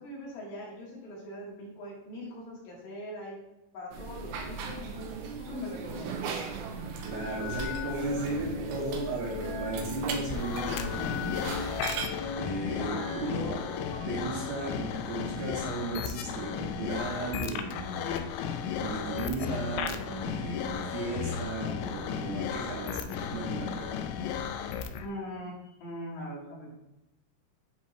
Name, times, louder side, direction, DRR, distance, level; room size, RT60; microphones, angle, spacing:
voice 1, 0.0-3.4 3.7-6.2 12.8-13.0 25.0-25.5 25.8-26.7, equal, 65° left, -5 dB, 2.9 m, -41 dB
sound 1, 3.9-12.1, right 4 dB, 85° right, 2.2 m, -38 dB
sound 2, 6.6-14.0, left 5 dB, 45° left, 1.4 m, -39 dB
voice 2, 7.0-11.5 12.3-13.6 14.1-18.3 18.8-23.9, right 2 dB, 70° right, -4 dB, 2.6 m, -35 dB
sound 3, 10.3-25.1, left 7 dB, 85° left, 2.4 m, -35 dB
10.5 x 3.5 x 3.2 m, 0.90 s
omnidirectional pair, 5.2 m